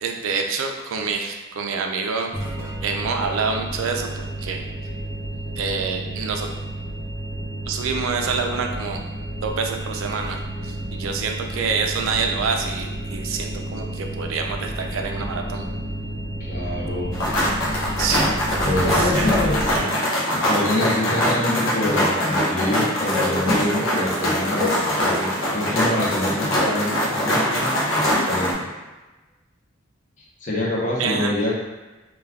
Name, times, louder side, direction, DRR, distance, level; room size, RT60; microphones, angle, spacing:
voice 1, 0.0-2.3 2.8-4.6 5.6-6.5 7.7-9.0 9.4-15.7 18.0-19.4 31.0-31.3, right 5 dB, 80° right, 3 dB, 0.4 m, -27 dB
sound 1, 2.3-19.8, right 1 dB, 10° right, 0.9 m, -31 dB
voice 2, 16.4-17.2 18.7-19.2 20.5-27.8 28.3-28.7 30.4-31.5, left 1 dB, 40° left, -5 dB, 0.6 m, -26 dB
sound 2, 17.1-28.5, left 1 dB, 75° left, 0.6 m, -22 dB
2.3 x 2.2 x 3.4 m, 1.1 s
head